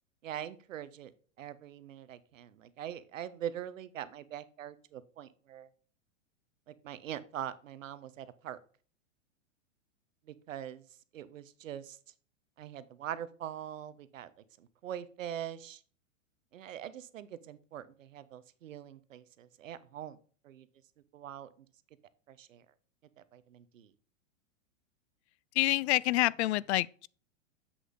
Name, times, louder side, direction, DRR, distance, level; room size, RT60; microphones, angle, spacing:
voice 1, 0.2-1.1 1.4-5.7 6.8-8.6 10.5-10.8 11.1-12.0 12.6-14.3 14.6-15.8 16.5-20.2 20.4-20.7 21.1-21.5 22.3-22.6 23.3-23.9, right 10 dB, 80° right, 1.0 m, -43 dB
voice 2, 25.6-27.1, left 17 dB, 60° left, 0.5 m, -27 dB
7.8 x 6.4 x 3.6 m
hypercardioid pair, 120°, 38 cm